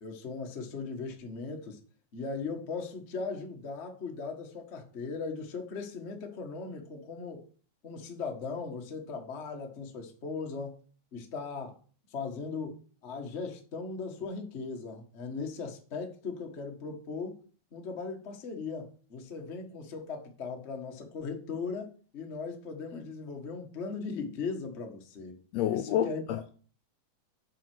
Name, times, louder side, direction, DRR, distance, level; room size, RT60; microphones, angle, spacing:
voice 1, 0.0-1.8 2.1-7.5 7.8-10.8 11.1-11.8 12.1-17.4 17.7-25.4 25.7-26.2, left 4 dB, 60° left, 0.7 m, -38 dB
voice 2, 25.5-26.5, left 11 dB, 90° left, 1.5 m, -29 dB
7.5 x 5.6 x 6.1 m
omnidirectional pair, 3.7 m